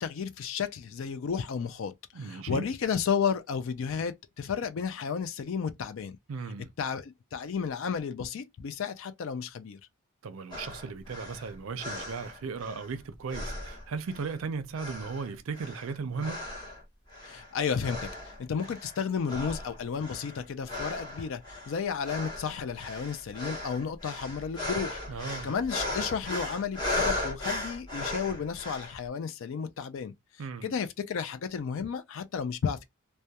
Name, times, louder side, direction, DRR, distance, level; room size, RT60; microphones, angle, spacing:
voice 1, 0.0-6.2 6.8-9.8 17.2-18.1 18.4-25.0 25.4-30.1 30.6-32.8, left 6 dB, 60° left, 0.3 m, -32 dB
voice 2, 2.1-2.6 6.3-6.7 10.2-16.5 25.1-25.6 30.4-30.7, right 5 dB, 65° right, 0.4 m, -36 dB
sound 1, 10.5-13.0 13.3-14.4 14.7-16.8 17.1-17.5 17.8-19.0 19.3-29.0, left 1 dB, 20° left, 0.9 m, -37 dB
2.2 x 2.1 x 2.7 m
head